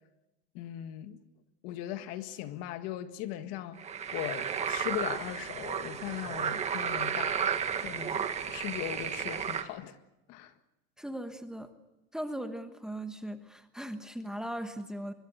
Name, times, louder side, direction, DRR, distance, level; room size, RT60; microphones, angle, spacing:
voice 1, 0.5-1.2 1.6-3.8 4.1-7.5 7.8-10.0 10.3-10.5, left 12 dB, 55° left, 1.8 m, -39 dB
sound 1, 3.8-9.6, right 7 dB, 20° right, 1.6 m, -33 dB
voice 2, 11.0-11.7 12.1-15.1, right 1 dB, ahead, 1.3 m, -38 dB
24.5 x 21.5 x 8.1 m
cardioid pair, 155°, 29 cm